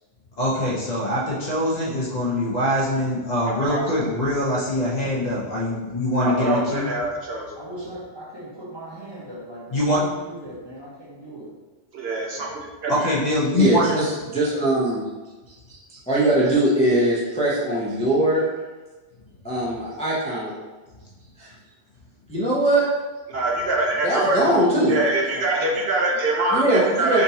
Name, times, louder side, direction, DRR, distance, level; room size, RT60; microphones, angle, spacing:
voice 1, 0.4-6.9 9.7-10.0 12.9-14.0, left 1 dB, 40° left, -6 dB, 0.8 m, -23 dB
voice 2, 3.5-3.8 6.2-7.5 11.9-12.5 12.8-13.1 23.3-24.4 24.9-27.2, right 2 dB, 65° right, -1 dB, 0.8 m, -24 dB
voice 3, 7.6-11.5 12.2-12.5 24.4-25.0 25.3-25.8, equal, 30° right, -7 dB, 0.6 m, -38 dB
voice 4, 13.6-15.1 15.5-18.5 19.4-20.5 21.4-21.5 22.3-22.9 24.0-25.0 26.5-27.2, right 1 dB, 10° left, -7 dB, 0.4 m, -21 dB
3.6 x 2.6 x 2.8 m, 1.2 s
omnidirectional pair, 1.2 m